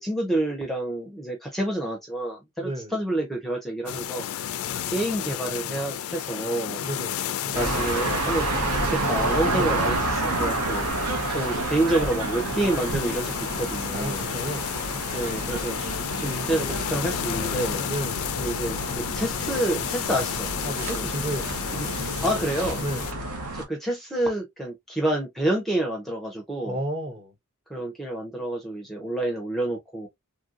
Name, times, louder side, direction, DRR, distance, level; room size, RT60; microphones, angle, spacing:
voice 1, 0.0-6.8 7.5-8.5 8.8-10.9 11.3-14.3 15.1-15.8 16.2-17.8 18.4-20.5 20.9-21.1 21.8-21.9 22.2-22.8 23.5-26.8 27.7-30.1, right 1 dB, ahead, 0.5 m, -28 dB
voice 2, 2.6-2.9 6.8-7.3 13.9-14.8 17.8-18.3 20.6-21.5 22.8-23.1 26.6-27.3, right 1 dB, 25° right, 0.8 m, -32 dB
sound 1, 3.9-23.1, left 10 dB, 70° left, 0.3 m, -32 dB
sound 2, 7.5-23.6, right 2 dB, 75° right, 0.9 m, -29 dB
3.1 x 2.6 x 2.4 m
head